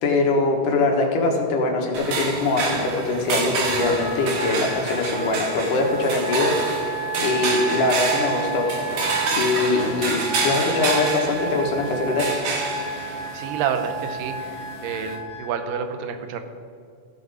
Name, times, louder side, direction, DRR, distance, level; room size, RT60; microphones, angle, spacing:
voice 1, 0.0-8.7 9.3-12.3, left 3 dB, 75° left, 1 dB, 2.9 m, -23 dB
sound 1, 1.9-15.2, right 4 dB, 60° right, 2.2 m, -29 dB
Wind instrument woodwind instrument, 3.6-15.6, right 3 dB, 40° left, 0.6 m, -31 dB
voice 2, 13.3-16.4, right 7 dB, 90° right, 8 dB, 2.5 m, -29 dB
14.5 x 6.9 x 4.9 m, 2.3 s
omnidirectional pair, 3.8 m